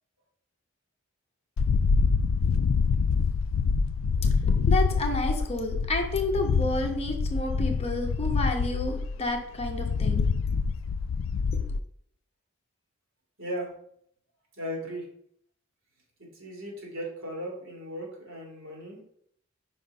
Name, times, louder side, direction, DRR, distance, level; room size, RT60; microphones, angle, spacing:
sound 1, 1.6-11.8, left 5 dB, 70° left, 0.3 m, -26 dB
voice 1, 4.4-10.3, left 2 dB, 30° left, 3 dB, 0.9 m, -30 dB
voice 2, 14.6-15.0 16.2-19.0, equal, 85° right, -2 dB, 2.7 m, -37 dB
5.1 x 3.8 x 5.4 m, 0.67 s
head